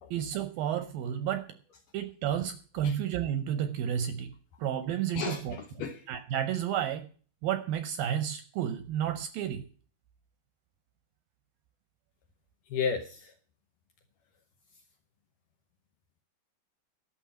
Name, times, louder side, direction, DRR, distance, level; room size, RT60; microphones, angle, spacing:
voice 1, 0.1-1.4 1.9-4.3 4.6-5.6 6.1-7.0 7.4-9.6, right 10 dB, 75° right, 9 dB, 2.2 m, -31 dB
voice 2, 5.2-6.0 12.7-13.3, left 6 dB, 75° left, 5 dB, 2.0 m, -33 dB
11.5 x 6.6 x 8.6 m, 0.42 s
omnidirectional pair, 4.9 m